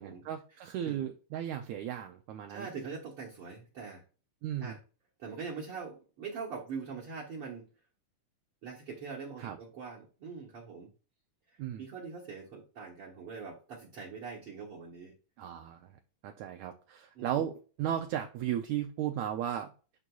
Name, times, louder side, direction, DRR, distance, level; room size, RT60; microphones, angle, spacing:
voice 1, 0.0-2.7 4.4-4.8 9.4-9.6 11.6-11.8 15.4-15.9 16.2-19.7, right 10 dB, 80° right, 5 dB, 1.7 m, -35 dB
voice 2, 2.5-4.0 4.6-4.8 5.2-7.7 8.6-10.9 11.5-15.1 17.2-17.5, right 5 dB, 55° right, -4 dB, 1.8 m, -43 dB
11.0 x 4.2 x 2.3 m, 0.35 s
omnidirectional pair, 3.8 m